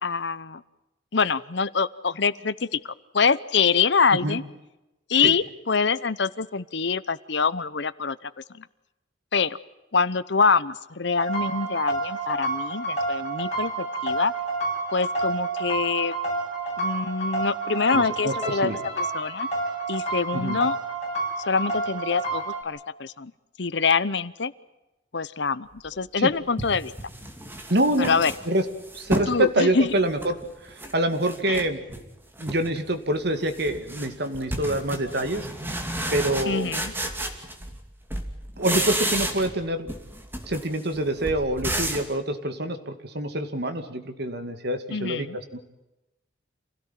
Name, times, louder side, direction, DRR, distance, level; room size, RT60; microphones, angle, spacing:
voice 1, 0.0-0.6 1.1-4.4 5.1-8.6 9.3-9.6 9.9-14.3 14.9-16.1 16.8-19.5 19.9-20.7 21.5-23.3 23.6-24.5 25.1-26.9 28.1-28.3 29.3-29.9 31.5-31.6 36.5-36.9 44.9-45.4, left 5 dB, 60° left, 17 dB, 0.9 m, -25 dB
sound 1, 11.2-22.6, right 2 dB, 35° left, 6.6 m, -29 dB
voice 2, 17.9-18.8 20.3-20.6 26.2-26.3 27.7-28.1 28.5-28.6 28.9-31.8 32.4-35.5 36.1-36.7 38.6-39.9 40.5-45.6, right 1 dB, 55° right, 8 dB, 2.4 m, -26 dB
sound 2, 25.9-26.0 26.6-29.4 29.8-30.9 31.2-32.1 32.4-32.8 33.1-37.8 38.1-39.6 39.9-42.1, right 1 dB, 10° right, 2.7 m, -32 dB
27.5 x 17.0 x 9.3 m, 0.98 s
head